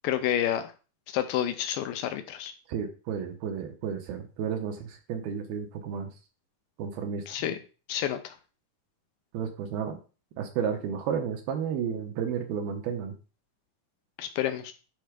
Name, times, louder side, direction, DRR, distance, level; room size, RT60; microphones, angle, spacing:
voice 1, 0.0-0.7 1.1-2.5 7.3-7.6 7.9-8.4 14.2-14.7, left 11 dB, 80° left, 8 dB, 2.1 m, -29 dB
voice 2, 2.7-6.1 6.8-7.2 9.3-10.0 10.4-13.1, right 7 dB, 75° right, 5 dB, 2.8 m, -32 dB
10.5 x 4.2 x 5.1 m, 0.35 s
omnidirectional pair, 4.5 m